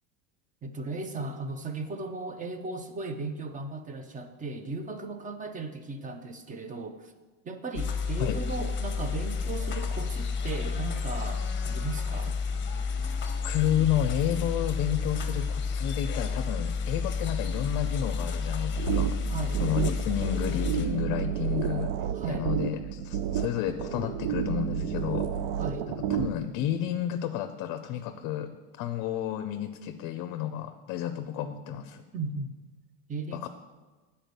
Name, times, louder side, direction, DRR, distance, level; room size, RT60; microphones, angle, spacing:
voice 1, 0.6-7.1 7.4-12.4 19.3-19.6 22.1-22.5 25.6-25.9 32.1-32.5 33.1-33.5, right 3 dB, 20° right, 8 dB, 0.6 m, -36 dB
sound 1, 7.8-20.9, left 5 dB, 30° left, 0.9 m, -31 dB
voice 2, 13.4-19.2 19.5-22.0 22.3-25.3 26.1-32.0 33.3-33.5, left 11 dB, 50° left, 8 dB, 0.5 m, -31 dB
sound 2, 18.8-26.5, right 9 dB, 75° right, 0.6 m, -30 dB
7.8 x 4.3 x 6.7 m, 1.3 s
supercardioid pair, 120°, 39 cm